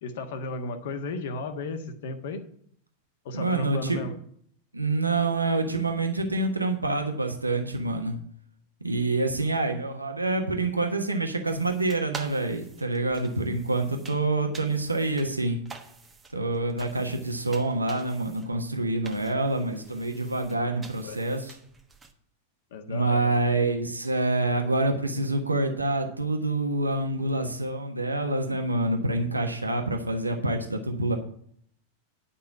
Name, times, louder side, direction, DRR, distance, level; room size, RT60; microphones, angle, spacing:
voice 1, 0.0-2.4 3.2-4.1 21.0-21.2 22.7-23.4, left 3 dB, 55° left, 7 dB, 1.3 m, -34 dB
voice 2, 3.3-4.0 4.7-8.2 8.8-15.6 16.3-21.6 22.9-31.2, right 2 dB, 85° right, 4 dB, 1.3 m, -27 dB
sound 1, 11.5-22.1, right 4 dB, 15° right, 1.2 m, -48 dB
10.5 x 5.7 x 7.0 m, 0.63 s
figure-of-eight pair, 90°, 0 cm